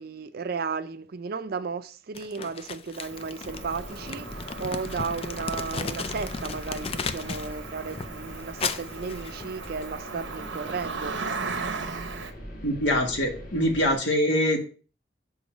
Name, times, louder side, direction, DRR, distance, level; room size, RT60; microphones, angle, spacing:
voice 1, 0.0-11.2, right 5 dB, 55° right, 0.5 m, -34 dB
Crumpling crinkling, 2.1-7.5 7.9-9.8, left 5 dB, 30° left, 0.4 m, -35 dB
Cricket, 3.0-12.3, right 4 dB, 90° right, 0.9 m, -38 dB
sound 1, 3.4-14.0, equal, 45° left, 1.8 m, -42 dB
voice 2, 12.6-14.6, equal, 80° left, 1.8 m, -24 dB
7.1 x 3.9 x 5.1 m
head